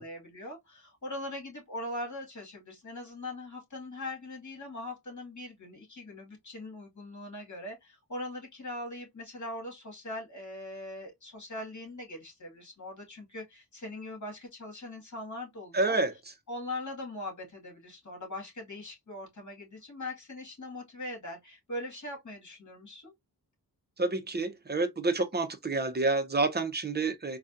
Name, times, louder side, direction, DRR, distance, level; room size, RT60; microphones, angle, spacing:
voice 1, 0.0-16.0 16.5-23.1, left 1 dB, 45° left, 2.0 m, -41 dB
voice 2, 15.7-16.1 24.0-27.4, right 3 dB, 25° right, 0.7 m, -28 dB
3.9 x 2.3 x 2.5 m
wide cardioid pair, 100°, 40 cm